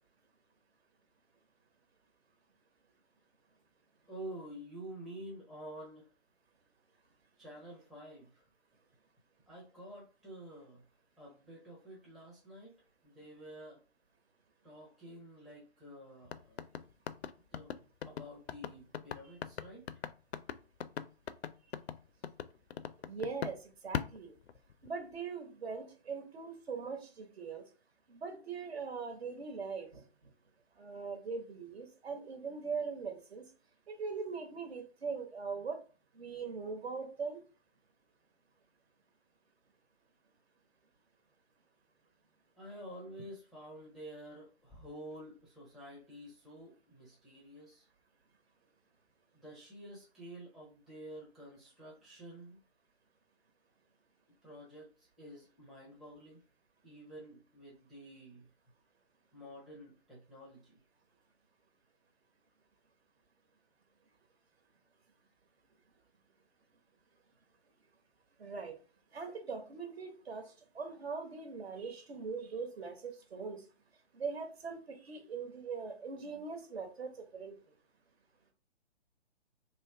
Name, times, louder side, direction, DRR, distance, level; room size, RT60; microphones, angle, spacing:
voice 1, 4.1-6.1 7.4-8.4 9.5-10.8 11.2-12.8 13.0-13.8 14.6-16.6 17.5-17.7 18.0-20.1 42.6-47.9 49.3-52.6 54.4-56.4 56.8-58.5 59.3-60.8, right 1 dB, ahead, -5 dB, 0.5 m, -50 dB
sound 1, 16.2-23.6 23.9-25.0, left 8 dB, 75° left, 0.5 m, -40 dB
voice 2, 23.1-24.3 24.8-27.6 28.1-30.0 30.8-33.4 33.9-35.8 36.1-37.4 68.4-68.7 69.1-70.4 70.7-73.6 74.1-77.5, right 5 dB, 70° right, 5 dB, 1.2 m, -41 dB
3.0 x 2.9 x 3.2 m, 0.36 s
hypercardioid pair, 140°, 32 cm